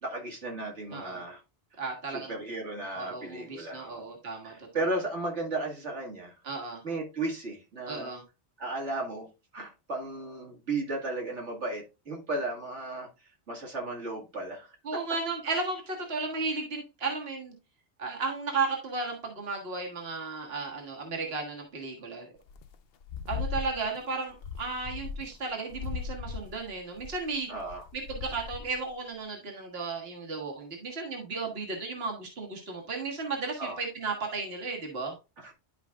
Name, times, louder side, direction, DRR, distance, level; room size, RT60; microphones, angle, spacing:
voice 1, 0.0-1.4 2.1-4.1 4.4-6.3 6.8-8.1 8.6-9.3 9.5-13.1 13.5-15.0 27.5-27.9 33.6-33.8 35.4-35.5, right 2 dB, 85° right, 2.4 m, -35 dB
voice 2, 1.8-2.3 3.0-4.5 6.4-6.8 7.9-8.2 14.9-17.5 18.0-22.3 23.3-27.5 27.9-35.1, right 4 dB, 60° right, 1.8 m, -34 dB
sound 1, 22.5-22.7 23.0-24.0 24.3-25.4 25.7-28.9, left 6 dB, 65° left, 0.8 m, -38 dB
11.5 x 5.0 x 2.4 m
omnidirectional pair, 1.2 m